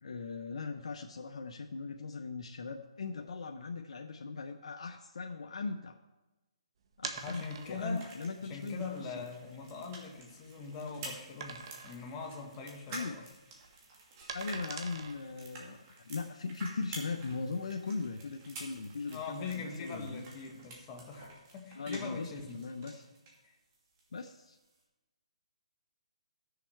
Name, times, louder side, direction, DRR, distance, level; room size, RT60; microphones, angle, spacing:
voice 1, 0.0-6.0 7.0-8.8 9.1-9.2 12.9-13.2 14.3-15.8 16.0-20.3 21.8-23.1 24.1-24.6, left 4 dB, 75° left, 3 dB, 0.8 m, -39 dB
sound 1, 6.9-8.0 8.6-8.7 9.2-9.3 9.8-10.8 11.4-12.1 12.4-12.7 13.0-15.6, right 5 dB, 50° right, 1.1 m, -44 dB
sound 2, 7.1-23.4 23.7-24.8, right 2 dB, 30° right, 2.5 m, -50 dB
voice 2, 7.2-8.1 8.4-13.3 19.1-22.6 23.4-23.5, left 4 dB, 20° left, 0 dB, 1.8 m, -42 dB
14.0 x 6.9 x 4.6 m, 1.0 s
hypercardioid pair, 155°, 3 cm